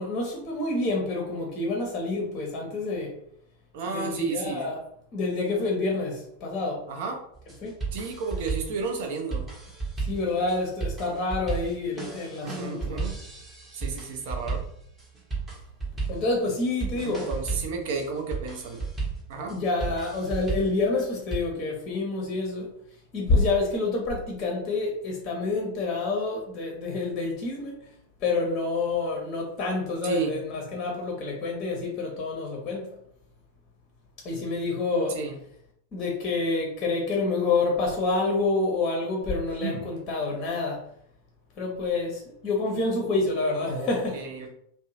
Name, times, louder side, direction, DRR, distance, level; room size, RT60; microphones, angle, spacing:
voice 1, 0.0-3.1 3.9-4.8 5.1-6.8 7.6-7.8 10.0-13.1 16.1-17.3 19.5-22.7 23.1-27.8 28.2-32.9 34.2-35.2 35.9-40.9 41.6-44.2, left 3 dB, 30° left, -1 dB, 0.7 m, -28 dB
voice 2, 3.7-4.7 6.9-7.2 7.9-9.5 12.4-13.2 13.7-14.6 17.0-18.9 19.3-19.5 30.0-30.4 35.1-35.4 43.7-44.5, right 5 dB, 50° right, 3 dB, 0.6 m, -32 dB
sound 1, 7.3-21.4, right 4 dB, 20° right, 0.8 m, -34 dB
sound 2, 39.0-40.6, right 4 dB, 85° right, 0.9 m, -40 dB
2.6 x 2.1 x 2.8 m, 0.71 s
figure-of-eight pair, 90°, 0 cm